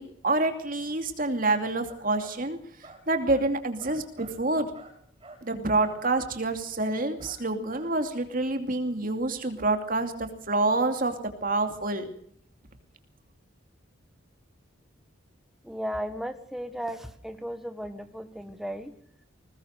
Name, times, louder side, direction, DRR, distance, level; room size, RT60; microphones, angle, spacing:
voice 1, 0.0-2.6 3.1-4.7 5.4-11.1 11.4-12.1, right 2 dB, 45° right, 7 dB, 2.7 m, -27 dB
sound 1, 1.8-2.3 2.8-3.5 3.8-4.3 4.7-5.4 5.8-6.0 7.2-7.4 7.7-7.9, right 2 dB, 25° right, 6.9 m, -48 dB
voice 2, 15.6-18.9, equal, ahead, 8 dB, 1.5 m, -35 dB
21.0 x 19.0 x 6.6 m, 0.65 s
head